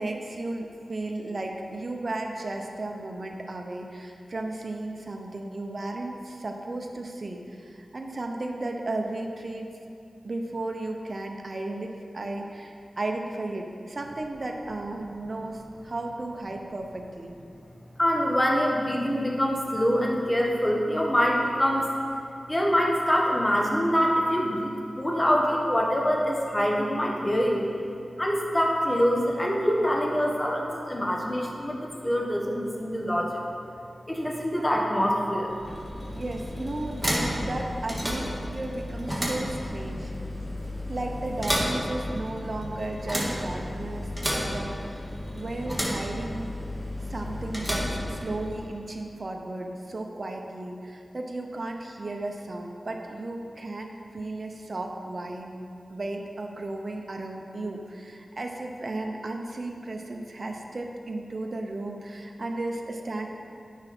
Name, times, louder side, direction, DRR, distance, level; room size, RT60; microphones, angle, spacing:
voice 1, 0.0-9.7 10.2-17.3 36.1-37.0 37.4-40.1 40.9-45.0 45.3-46.5 47.1-55.6 55.9-63.3, right 2 dB, 55° right, 2 dB, 0.8 m, -34 dB
voice 2, 18.0-21.9 22.5-24.7 25.0-27.6 28.2-33.4 34.1-35.5, equal, 20° left, -1 dB, 1.4 m, -25 dB
sound 1, 35.4-48.7, equal, 5° right, 1.7 m, -32 dB
9.4 x 5.9 x 4.4 m, 2.5 s
cardioid pair, 50°, 0 cm